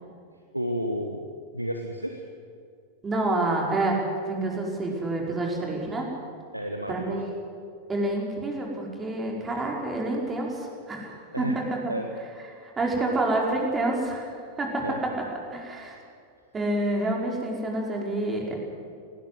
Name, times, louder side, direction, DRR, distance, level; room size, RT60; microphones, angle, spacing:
voice 1, 0.5-1.3 1.5-2.2 6.5-7.2 11.3-11.6 11.9-12.1 14.8-15.0, equal, 90° right, 4 dB, 1.3 m, -31 dB
voice 2, 3.0-4.0 4.3-6.1 6.9-7.3 7.9-11.8 12.6-14.3 14.6-14.9 15.5-16.0 16.5-18.6, right 2 dB, 15° right, -1 dB, 4.9 m, -28 dB
19.0 x 18.5 x 8.0 m, 2.3 s
figure-of-eight pair, 90°, 0 cm